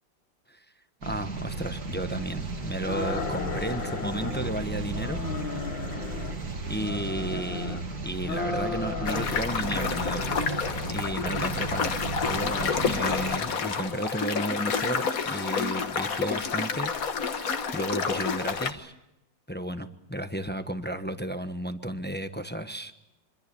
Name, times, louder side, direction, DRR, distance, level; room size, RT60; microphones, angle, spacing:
voice 1, 1.0-5.2 6.7-10.3 10.9-11.9 12.2-18.9 19.5-22.9, right 1 dB, 10° left, 8 dB, 0.8 m, -33 dB
sound 1, 1.0-13.4, right 3 dB, 55° right, 3.0 m, -35 dB
sound 2, 2.8-4.6 4.9-6.4 6.8-7.8 8.2-9.4 9.7-10.4, left 5 dB, 80° left, 2.4 m, -35 dB
sound 3, 9.0-18.7, left 5 dB, 50° left, 1.6 m, -29 dB
26.0 x 25.0 x 7.0 m, 0.86 s
omnidirectional pair, 2.0 m